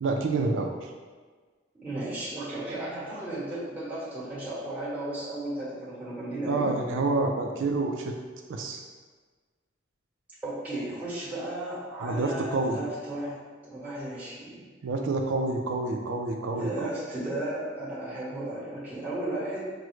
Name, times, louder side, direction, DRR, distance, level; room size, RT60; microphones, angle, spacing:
voice 1, 0.0-0.9 6.5-8.1 8.5-8.8 12.0-12.8 14.8-16.9, right 3 dB, 75° right, 2 dB, 0.3 m, -28 dB
voice 2, 1.8-6.7 10.4-13.4 13.6-14.7 16.6-19.6, right 1 dB, 10° right, -10 dB, 1.1 m, -34 dB
5.9 x 2.0 x 3.1 m, 1.4 s
head